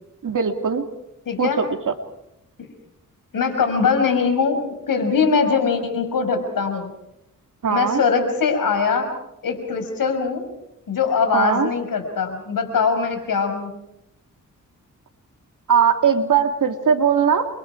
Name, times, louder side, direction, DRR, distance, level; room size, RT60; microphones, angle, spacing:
voice 1, 0.2-0.8 1.4-1.9 7.6-8.0 11.3-11.7 15.7-17.5, right 7 dB, 65° right, 5 dB, 2.8 m, -19 dB
voice 2, 1.3-1.6 2.6-2.7 3.3-6.9 7.7-9.1 9.4-10.4 10.9-13.7, left 5 dB, 80° left, 6 dB, 5.6 m, -21 dB
29.5 x 25.0 x 4.8 m, 0.84 s
cardioid pair, 75°, 33 cm